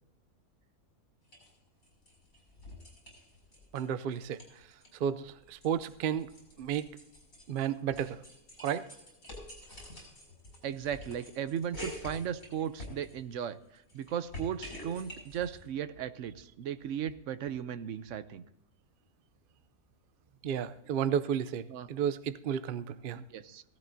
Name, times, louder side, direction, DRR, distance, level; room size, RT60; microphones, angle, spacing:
sound 1, 1.3-1.5 1.8-3.9 4.1-4.9 5.2-13.4 13.8-15.6, left 1 dB, 55° left, 6.4 m, -48 dB
voice 1, 3.7-4.4 5.0-6.3 6.6-6.9 7.5-8.2 8.6-8.9 20.4-23.2, right 9 dB, 85° right, 13 dB, 0.4 m, -32 dB
voice 2, 10.6-18.4 21.7-21.9 23.1-23.6, right 9 dB, 65° right, 12 dB, 0.9 m, -36 dB
16.5 x 13.5 x 2.7 m, 0.86 s
omnidirectional pair, 1.6 m